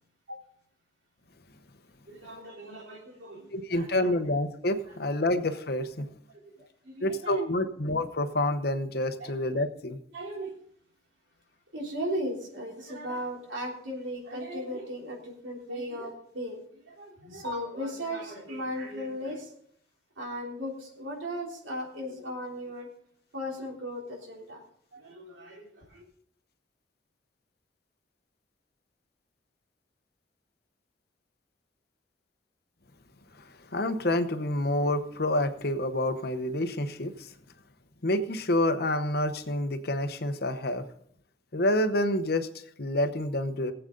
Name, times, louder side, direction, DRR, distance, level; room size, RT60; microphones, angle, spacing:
voice 1, 2.1-4.1 6.3-6.4 6.8-7.4 9.2-9.3 10.1-10.5 11.7-19.5 20.2-22.9 23.3-24.6 24.9-26.0, equal, 90° right, 3.2 m, -37 dB
voice 2, 3.5-6.1 7.0-10.0 33.7-37.3 38.0-40.8 41.5-42.5 42.8-43.7, left 1 dB, 55° left, 0.9 m, -28 dB
19.0 x 8.0 x 3.8 m
head